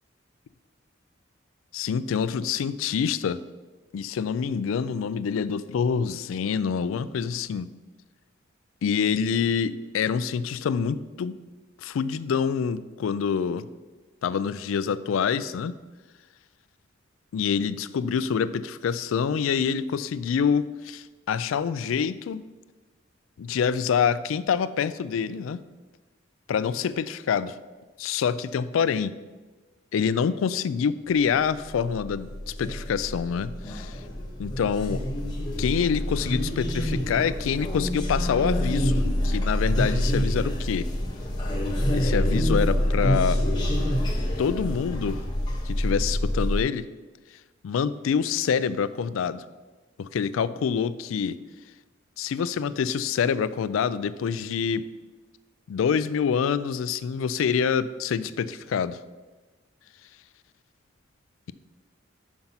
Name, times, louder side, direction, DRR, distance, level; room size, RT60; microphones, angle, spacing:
voice 1, 1.7-3.4 3.9-7.7 8.8-11.4 11.8-13.7 14.2-15.7 17.3-22.4 23.4-25.6 26.5-27.6 28.0-29.2 29.9-34.0 34.4-35.0 35.6-40.9 41.9-43.4 44.4-45.2 45.7-46.9 47.6-49.4 50.0-51.4 52.2-54.9 55.7-59.0, left 6 dB, 85° left, 16 dB, 0.3 m, -26 dB
sound 1, 31.6-46.6, equal, 20° left, 1.1 m, -27 dB
5.9 x 5.2 x 5.6 m, 1.2 s
head